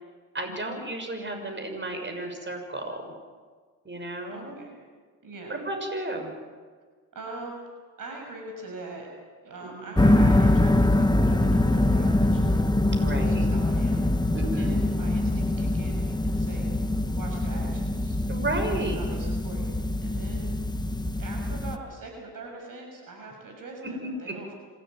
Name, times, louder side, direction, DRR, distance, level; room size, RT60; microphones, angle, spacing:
voice 1, 0.3-3.1 3.8-4.6 5.5-6.3 9.6-10.2 13.0-13.5 14.3-14.8 17.5-17.6 18.3-19.0 24.0-24.3, right 1 dB, 25° right, 5 dB, 6.3 m, -33 dB
voice 2, 4.3-4.7 5.2-5.6 7.1-7.6 8.0-9.1 9.4-12.6 13.1-14.3 14.5-18.2 18.7-19.7 20.0-20.5 21.2-24.5, right 3 dB, 50° right, 2 dB, 6.4 m, -42 dB
sound 1, 10.0-21.8, left 1 dB, 10° left, 1.5 m, -24 dB
26.5 x 14.0 x 9.3 m, 1.5 s
supercardioid pair, 70°, 40 cm